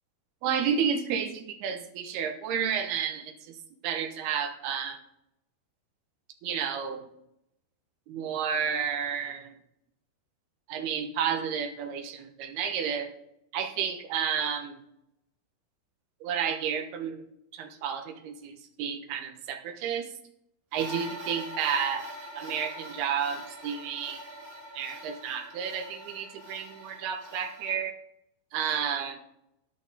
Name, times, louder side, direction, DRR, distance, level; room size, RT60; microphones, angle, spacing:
voice 1, 0.4-3.6 3.8-5.0 6.4-7.1 8.1-9.6 10.7-13.1 13.5-14.8 16.2-17.3 17.5-20.1 20.7-22.1 22.4-24.2 24.7-27.9 28.5-29.2, right 7 dB, 75° right, 4 dB, 3.1 m, -31 dB
sound 1, 20.7-27.8, equal, 40° right, 4.0 m, -43 dB
11.0 x 11.0 x 4.1 m, 0.82 s
omnidirectional pair, 4.6 m